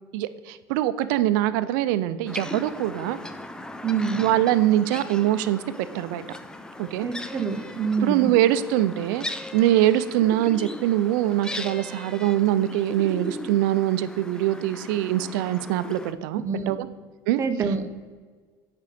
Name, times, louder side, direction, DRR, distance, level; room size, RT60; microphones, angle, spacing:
voice 1, 0.1-3.2 4.2-6.2 6.8-7.1 8.0-9.3 9.5-16.9 17.3-17.4, right 13 dB, 85° right, 14 dB, 0.5 m, -23 dB
sound 1, 2.3-16.1, left 1 dB, 5° left, 0.5 m, -38 dB
voice 2, 3.8-4.4 7.0-8.3 16.4-16.8 17.4-17.8, right 5 dB, 30° right, 7 dB, 0.9 m, -26 dB
8.2 x 5.2 x 5.1 m, 1.5 s
supercardioid pair, 115°, 10 cm